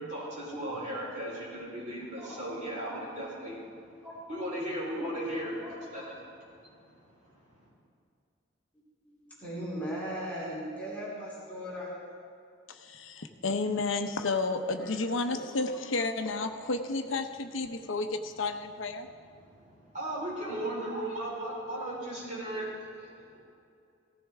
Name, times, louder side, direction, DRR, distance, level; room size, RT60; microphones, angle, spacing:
voice 1, 0.0-3.8 4.3-5.5 5.9-7.7 19.3-23.4, right 1 dB, 40° right, -6 dB, 4.4 m, -37 dB
voice 2, 5.0-6.1 9.1-11.9 14.2-14.3 14.8-14.9 15.3-15.6 16.1-16.2, equal, 10° left, -8 dB, 3.2 m, -39 dB
voice 3, 12.7-19.1, left 3 dB, 90° left, 6 dB, 0.9 m, -31 dB
17.5 x 15.0 x 3.6 m, 2.5 s
head